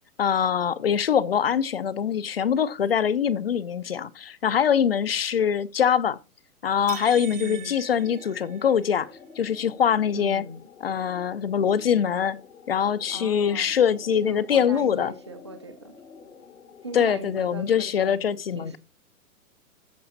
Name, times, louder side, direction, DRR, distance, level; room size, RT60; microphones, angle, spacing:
voice 1, 0.2-6.2 6.6-9.1 9.4-10.4 10.8-12.4 12.7-15.1 16.9-18.8, left 8 dB, 45° left, 0.6 m, -23 dB
sound 1, 6.9-9.0, right 8 dB, 60° right, 1.3 m, -42 dB
voice 2, 7.3-7.8 10.1-10.6 13.1-13.8 14.1-15.9 16.8-18.2 18.5-18.8, right 1 dB, 20° right, 0.5 m, -39 dB
sound 2, 7.8-17.5, left 5 dB, 80° left, 2.5 m, -49 dB
14.0 x 5.1 x 4.0 m
hypercardioid pair, 175°, 43 cm